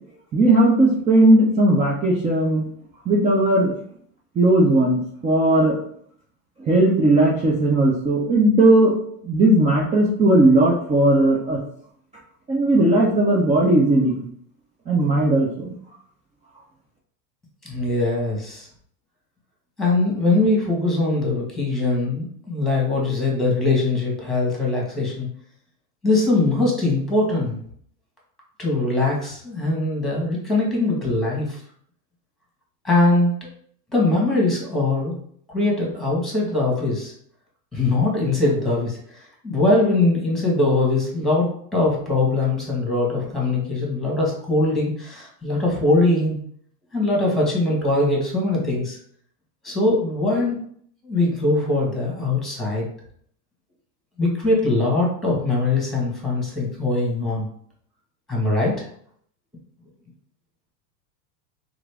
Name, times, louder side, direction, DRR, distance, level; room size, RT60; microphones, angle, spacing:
voice 1, 0.3-2.6 3.1-3.7 4.4-5.8 6.7-8.9 9.2-11.6 12.5-14.2 14.9-15.7, right 1 dB, 15° right, -4 dB, 0.4 m, -17 dB
voice 2, 17.6-18.7 19.8-25.3 26.0-27.6 28.6-31.6 32.8-33.3 33.9-35.1 35.5-37.1 37.7-39.0 39.4-46.4 46.9-49.0 49.6-50.6 51.0-52.9 54.2-57.5 58.3-58.9, left 2 dB, ahead, -3 dB, 1.4 m, -21 dB
3.0 x 2.5 x 3.4 m, 0.63 s
hypercardioid pair, 110°, 48 cm